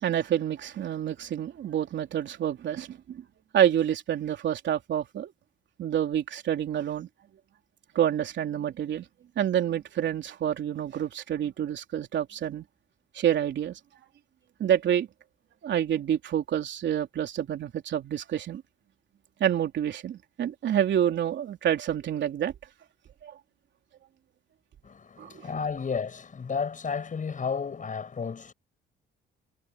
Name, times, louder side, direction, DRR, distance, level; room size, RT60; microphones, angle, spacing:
voice 1, 0.0-3.2 3.5-5.3 5.8-7.1 8.0-9.1 9.4-12.7 13.1-13.8 14.6-15.1 15.6-18.6 19.4-22.5 23.2-23.4 25.2-25.3, right 10 dB, 65° right, 3.4 m, -28 dB
voice 2, 24.8-28.5, left 5 dB, 40° left, 6.0 m, -32 dB
cardioid pair, 90°, 20 cm